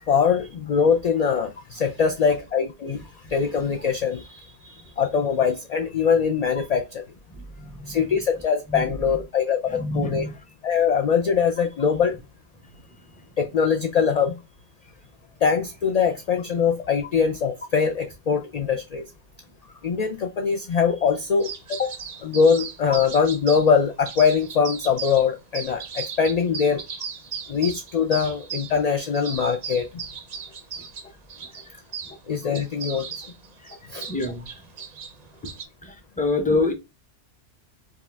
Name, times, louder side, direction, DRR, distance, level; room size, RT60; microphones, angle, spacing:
voice 1, 0.1-7.0 7.9-10.3 10.6-12.2 13.4-14.3 15.4-19.0 19.8-21.9 22.2-26.8 27.5-30.0 32.3-33.1 33.9-34.1, left 6 dB, 55° left, 0.4 m, -22 dB
voice 2, 7.3-8.2 8.7-9.1 9.7-10.4 31.7-31.8 33.6-33.8 34.1-34.5 35.8-36.7, left 2 dB, 10° left, 0.7 m, -27 dB
sound 1, 21.4-23.7 24.1-25.3 25.5-32.2 32.5-35.7, right 6 dB, 50° right, 0.6 m, -36 dB
4.8 x 2.4 x 3.3 m
omnidirectional pair, 1.2 m